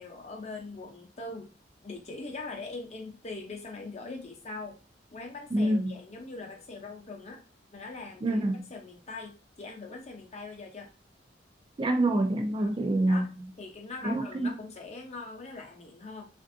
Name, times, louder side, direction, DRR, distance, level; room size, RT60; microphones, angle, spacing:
voice 1, 0.0-1.5 1.8-4.8 5.1-7.4 7.7-10.9 12.6-12.7 13.1-13.3 13.6-16.3, left 3 dB, 40° left, 0.7 m, -42 dB
voice 2, 5.5-5.9 8.2-8.6 11.8-13.3 14.0-14.5, right 1 dB, 30° right, 0.4 m, -26 dB
3.3 x 2.6 x 2.6 m
head